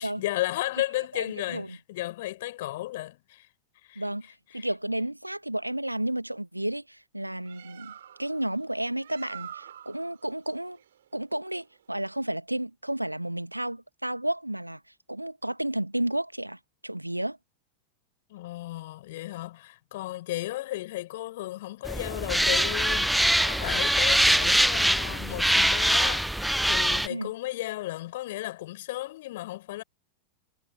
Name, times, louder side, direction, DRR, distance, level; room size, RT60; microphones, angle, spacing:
voice 1, 0.0-3.5 3.8-4.1 4.5-4.7 18.3-29.8, left 17 dB, 55° left, 4.6 m, -34 dB
voice 2, 1.1-1.8 3.9-4.3 4.5-7.9 8.2-10.8 11.1-14.8 15.1-17.4 27.1-27.3, right 1 dB, 85° right, 1.2 m, -32 dB
Bird, 7.2-12.4, right 10 dB, 65° right, 6.4 m, -48 dB
sound 1, 21.8-27.1, right 1 dB, ahead, 0.5 m, -23 dB
figure-of-eight pair, 90°, 0 cm